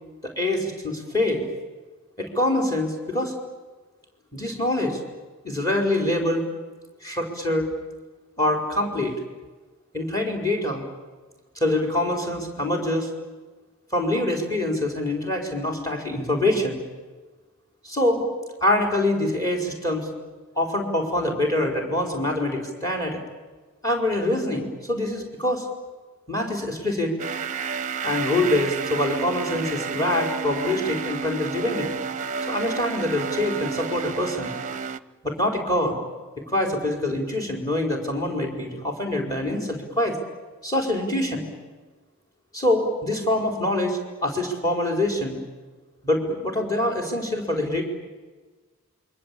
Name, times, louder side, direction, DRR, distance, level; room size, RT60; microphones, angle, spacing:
voice 1, 0.2-1.4 2.2-3.3 4.3-5.0 5.4-6.4 7.0-7.7 8.4-9.1 9.9-10.9 11.6-13.1 13.9-16.8 17.8-18.3 18.6-20.1 20.6-23.2 23.8-25.6 26.3-27.1 28.0-31.9 32.5-34.5 35.2-36.0 36.5-40.2 40.6-41.4 42.5-45.4 46.0-47.8, left 1 dB, 15° left, 3 dB, 5.0 m, -25 dB
sound 1, 27.2-35.0, right 6 dB, 35° right, 0.8 m, -30 dB
27.5 x 24.0 x 8.8 m, 1.3 s
head